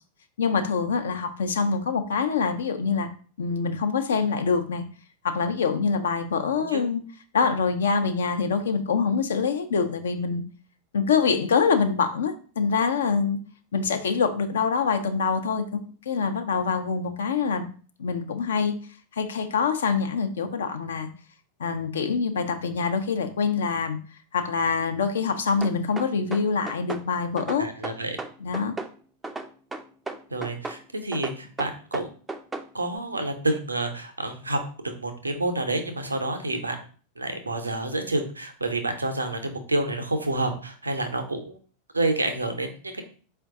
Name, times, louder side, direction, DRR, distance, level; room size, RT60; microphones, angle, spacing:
voice 1, 0.4-3.1 3.4-4.8 5.2-7.0 7.3-10.4 10.9-13.4 13.7-17.6 18.0-18.7 19.2-21.1 21.6-24.0 24.3-27.7 28.4-28.7, left 5 dB, 65° left, 7 dB, 0.4 m, -25 dB
sound 1, 25.6-27.1 27.4-28.9 29.2-30.8 31.1-32.7, right 3 dB, 10° right, 0.3 m, -34 dB
voice 2, 27.6-28.2 30.3-32.1 32.7-36.8 37.2-41.5 41.9-43.0, right 2 dB, 80° right, 6 dB, 0.5 m, -28 dB
4.4 x 2.3 x 3.5 m, 0.41 s
figure-of-eight pair, 90°, 0 cm